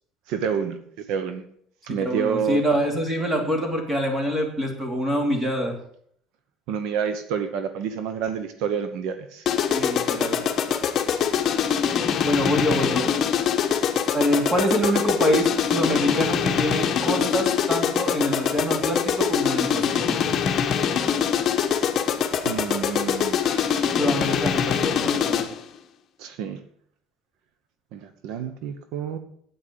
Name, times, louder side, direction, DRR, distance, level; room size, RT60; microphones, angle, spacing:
voice 1, 0.3-0.8 1.1-1.4 1.8-2.6 6.7-9.4 16.0-16.1 22.3-24.0 26.2-26.6 27.9-29.2, right 7 dB, 70° right, 9 dB, 1.0 m, -29 dB
voice 2, 1.9-5.7 9.7-10.4 12.2-13.1 14.1-20.3 24.0-25.5, equal, 15° right, 3 dB, 2.7 m, -25 dB
sound 1, 9.5-25.6, left 8 dB, 40° left, 1.2 m, -24 dB
9.0 x 8.8 x 6.9 m, 0.65 s
cardioid pair, 140°, 0 cm